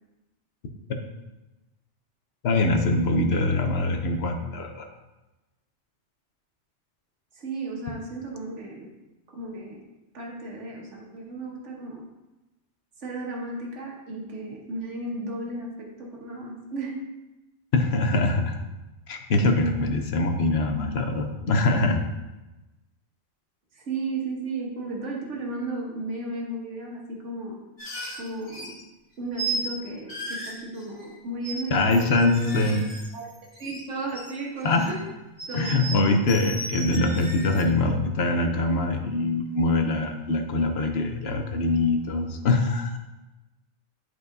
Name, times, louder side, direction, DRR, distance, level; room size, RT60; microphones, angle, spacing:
voice 1, 2.4-4.9 17.7-18.6 19.1-22.1 31.7-32.9 34.6-34.9 35.5-43.0, left 2 dB, 60° left, 5 dB, 1.0 m, -23 dB
voice 2, 7.4-8.9 9.3-9.8 10.1-12.0 13.0-17.0 23.7-27.6 28.2-28.7 29.2-32.8 33.1-33.3 33.6-35.1 35.5-35.8, right 2 dB, 75° right, -1 dB, 1.6 m, -34 dB
sound 1, 27.8-28.8 29.3-29.7 30.1-31.1 31.4-31.6 31.9-33.8 34.1-35.0 35.4-37.6, right 2 dB, 75° left, 1.8 m, -35 dB
11.0 x 4.7 x 2.7 m, 1.0 s
omnidirectional pair, 1.2 m